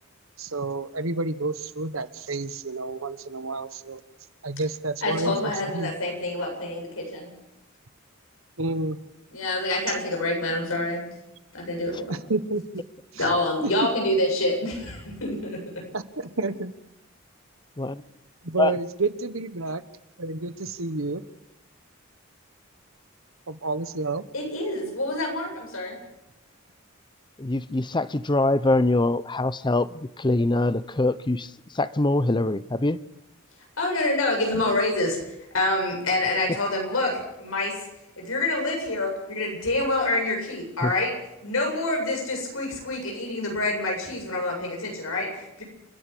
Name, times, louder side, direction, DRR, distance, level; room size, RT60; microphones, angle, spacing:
voice 1, 0.4-4.0 4.4-5.9 8.6-9.0 12.1-12.9 13.1-13.3 13.6-13.7 15.9-16.7 18.4-19.8 20.2-21.2 23.5-24.3, right 3 dB, 80° right, 1.3 m, -30 dB
voice 2, 5.0-7.3 9.3-11.0 11.5-12.1 13.1-15.8 24.3-26.0 33.8-37.9 38.2-41.1 41.4-45.6, left 2 dB, 85° left, 7.9 m, -27 dB
voice 3, 27.4-33.0 40.8-40.9, left 2 dB, 20° left, 0.7 m, -24 dB
29.5 x 11.0 x 8.4 m
head